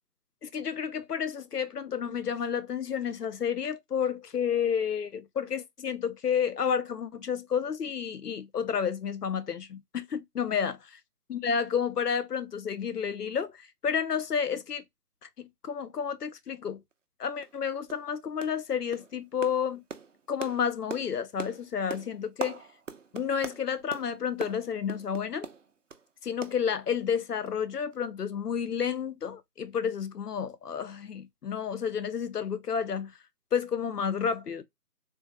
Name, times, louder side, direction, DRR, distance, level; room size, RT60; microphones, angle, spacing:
voice 1, 0.4-10.8 11.3-14.8 15.2-16.8 17.2-19.8 20.3-22.6 23.1-25.5 26.2-33.1 33.5-34.6, left 7 dB, 75° left, 0.7 m, -31 dB
sound 1, 16.9-17.0 17.4-17.6 17.9-18.1 18.4-18.7 18.9-26.1 26.4-27.2 27.4-27.6 27.9-28.0, right 5 dB, 55° right, 0.5 m, -42 dB
3.5 x 2.1 x 3.0 m
figure-of-eight pair, 165°, 47 cm